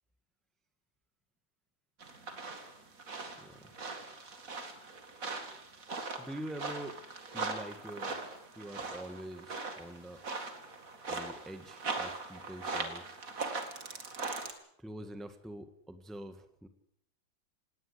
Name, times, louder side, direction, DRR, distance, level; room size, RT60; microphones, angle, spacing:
sound 1, 2.0-14.5, right 3 dB, 45° right, 2.7 m, -40 dB
voice 1, 3.4-3.7 6.2-7.0 7.3-8.1 8.5-10.2 11.1-13.2 14.8-16.7, right 1 dB, ahead, 9 dB, 1.4 m, -45 dB
18.5 x 18.5 x 8.4 m, 0.70 s
omnidirectional pair, 2.1 m